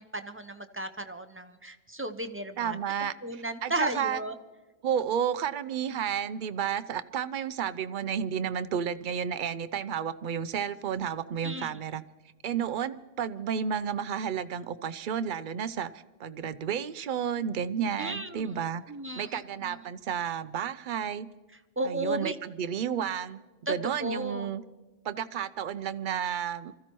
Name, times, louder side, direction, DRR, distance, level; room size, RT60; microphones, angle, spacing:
voice 1, 0.0-2.8 3.2-4.3 11.4-11.8 18.0-18.5 18.9-19.8 21.8-22.4 23.7-24.5, right 1 dB, 15° right, 8 dB, 0.6 m, -34 dB
voice 2, 2.6-4.2 4.8-12.0 12.4-15.9 16.2-18.8 19.2-21.3 21.8-24.6 25.0-26.7, right 8 dB, 60° right, 13 dB, 0.7 m, -32 dB
25.5 x 14.5 x 3.0 m, 1.2 s
omnidirectional pair, 1.1 m